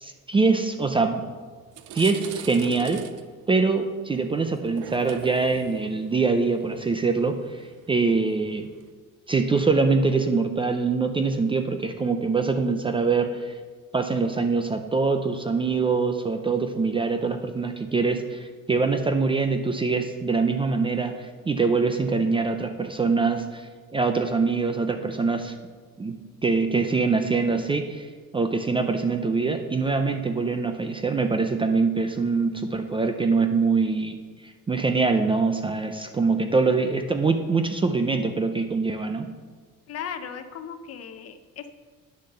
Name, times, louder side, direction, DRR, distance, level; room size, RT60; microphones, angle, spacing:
voice 1, 0.0-1.3 1.9-3.0 3.5-8.7 9.3-13.5 13.9-23.6 23.9-25.5 26.0-39.3, right 4 dB, 15° right, 7 dB, 0.4 m, -24 dB
sound 1, 1.1-1.2 1.6-8.9, right 10 dB, 80° right, 0.7 m, -41 dB
voice 2, 39.9-41.7, left 7 dB, 50° left, 9 dB, 0.8 m, -37 dB
9.6 x 6.9 x 6.7 m, 1.5 s
cardioid pair, 165°, 32 cm